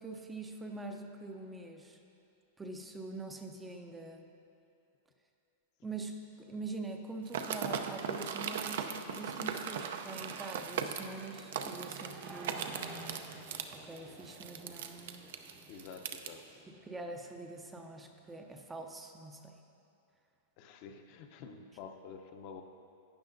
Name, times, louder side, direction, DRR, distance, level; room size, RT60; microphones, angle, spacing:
voice 1, 0.0-2.0 2.6-4.3 5.8-12.6 13.7-15.3 16.7-19.5, right 2 dB, 10° right, 3 dB, 0.5 m, -44 dB
sound 1, 7.3-16.3, right 7 dB, 70° right, 0.5 m, -39 dB
sound 2, 9.1-18.5, right 3 dB, 40° right, 0.8 m, -54 dB
voice 2, 15.7-16.7 20.6-22.6, left 6 dB, 45° left, 5 dB, 0.6 m, -49 dB
12.0 x 8.4 x 2.6 m, 2.7 s
supercardioid pair, 150°, 0 cm